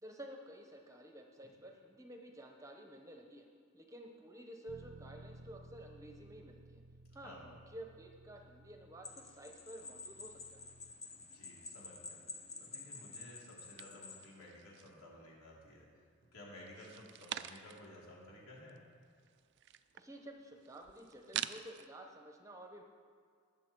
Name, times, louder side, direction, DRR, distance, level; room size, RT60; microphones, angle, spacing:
voice 1, 0.0-3.4 3.7-6.8 7.1-10.6 19.9-22.8, right 1 dB, 15° right, 3 dB, 0.8 m, -52 dB
Bass guitar, 4.7-10.9, right 2 dB, 85° right, 0.7 m, -58 dB
voice 2, 7.2-7.6 11.1-12.2 12.6-15.9 16.3-18.8, left 1 dB, 80° left, -4 dB, 3.4 m, -55 dB
sound 1, 9.0-14.3, left 4 dB, 30° left, 1.0 m, -50 dB
sound 2, 13.8-15.1 15.5-16.2 16.7-18.0 18.3-18.4 18.6-21.9, right 11 dB, 50° right, 0.4 m, -46 dB
20.0 x 7.1 x 4.5 m, 2.1 s
head